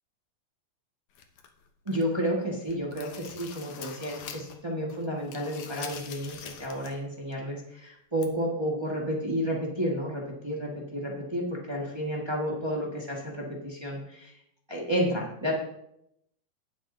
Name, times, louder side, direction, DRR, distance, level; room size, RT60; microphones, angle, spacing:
sound 1, 1.1-2.2 2.6-4.6 4.9-7.0 7.3-7.4 8.2-8.3, left 7 dB, 65° left, 1.9 m, -44 dB
voice 1, 1.8-14.4 14.7-15.5, equal, 35° right, -3 dB, 0.4 m, -31 dB
20.0 x 7.4 x 2.8 m, 0.78 s
omnidirectional pair, 3.9 m